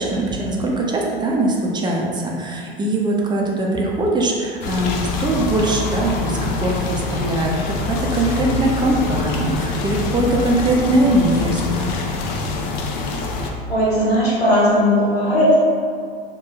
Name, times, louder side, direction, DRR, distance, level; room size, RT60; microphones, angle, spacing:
voice 1, 0.0-11.9, right 1 dB, 15° right, -1 dB, 0.4 m, -21 dB
sound 1, 4.6-13.5, left 3 dB, 50° left, 0.5 m, -25 dB
voice 2, 13.7-15.8, equal, 85° left, -8 dB, 0.9 m, -17 dB
4.8 x 2.2 x 2.2 m, 2.1 s
figure-of-eight pair, 80°, 30 cm